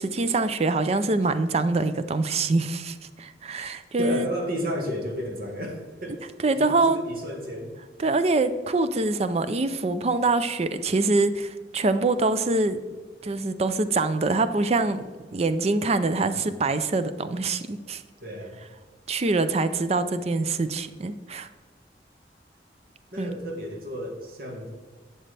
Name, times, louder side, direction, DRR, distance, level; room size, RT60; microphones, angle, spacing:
voice 1, 0.0-4.3 6.4-7.0 8.0-12.8 13.2-15.0 15.3-18.0 19.1-21.5 23.2-23.4, right 3 dB, 35° right, 12 dB, 0.4 m, -24 dB
voice 2, 4.0-6.2 6.6-7.8 16.2-16.5 18.2-18.6 23.1-24.7, equal, 55° right, 2 dB, 1.6 m, -32 dB
11.5 x 7.7 x 3.4 m, 1.4 s
head